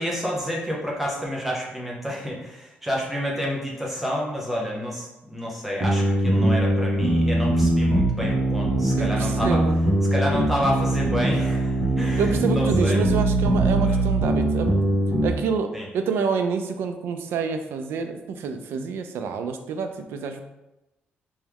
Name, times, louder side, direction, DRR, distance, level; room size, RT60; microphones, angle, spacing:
voice 1, 0.0-9.6 10.1-13.0 13.8-14.0 15.7-15.9, equal, 5° right, -3 dB, 0.8 m, -29 dB
sound 1, 5.8-15.3, right 1 dB, 45° right, 1.3 m, -21 dB
voice 2, 9.0-9.8 12.2-14.7 15.2-20.4, right 5 dB, 85° right, 7 dB, 0.4 m, -27 dB
3.4 x 3.1 x 3.5 m, 0.96 s
cardioid pair, 175°, 4 cm